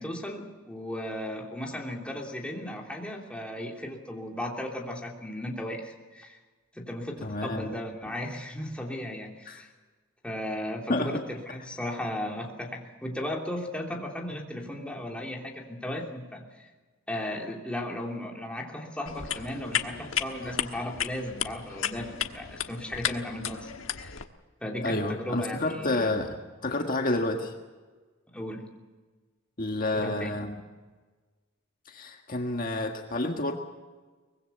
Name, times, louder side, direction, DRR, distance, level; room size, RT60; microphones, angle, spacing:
voice 1, 0.0-6.4 6.7-9.7 10.2-16.5 17.1-24.1 24.6-26.1 28.3-28.7 30.0-30.3, left 1 dB, 5° left, -1 dB, 3.1 m, -36 dB
voice 2, 7.2-7.7 9.5-9.6 10.9-11.1 24.8-26.4 26.6-27.5 29.6-30.6 31.9-33.5, left 2 dB, 45° left, 2 dB, 1.7 m, -29 dB
sound 1, 19.1-24.2, left 8 dB, 80° left, 1.3 m, -34 dB
24.0 x 21.0 x 7.0 m, 1.3 s
head